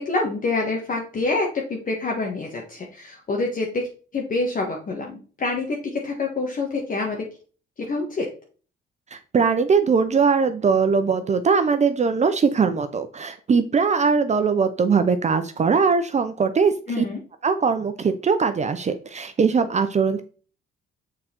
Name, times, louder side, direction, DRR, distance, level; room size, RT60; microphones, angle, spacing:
voice 1, 0.0-3.9 4.1-7.2 7.8-8.3 16.9-17.2, left 3 dB, 45° left, 0 dB, 1.4 m, -26 dB
voice 2, 9.3-17.0 17.4-20.2, right 5 dB, 35° right, 9 dB, 0.6 m, -21 dB
6.6 x 3.8 x 4.4 m, 0.38 s
cardioid pair, 90°, 20 cm